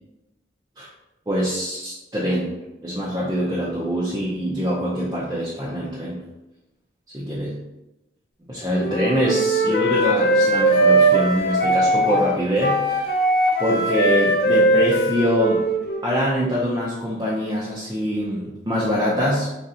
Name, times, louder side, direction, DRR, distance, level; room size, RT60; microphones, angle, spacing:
voice 1, 1.3-2.5 2.8-6.2 7.1-7.6 8.5-13.1 13.6-15.7 16.0-19.5, equal, 20° right, -7 dB, 0.5 m, -24 dB
Wind instrument woodwind instrument, 8.8-16.2, right 1 dB, 55° left, 0.5 m, -20 dB
3.8 x 3.2 x 2.7 m, 0.96 s
head